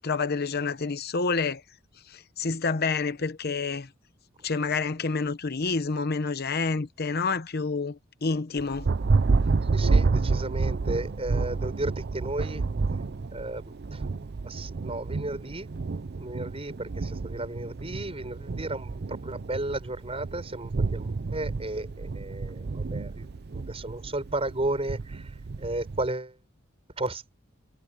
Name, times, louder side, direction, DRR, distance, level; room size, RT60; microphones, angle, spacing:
voice 1, 0.0-1.6 2.1-3.9 4.4-8.9, left 4 dB, 50° left, 0.9 m, -28 dB
Thunder, 8.6-26.1, right 4 dB, 55° right, 0.5 m, -29 dB
voice 2, 9.7-12.6 13.3-14.0 14.4-15.7 16.2-23.3 23.5-25.3 25.6-26.3 27.0-27.2, right 2 dB, 30° right, 5.8 m, -34 dB
head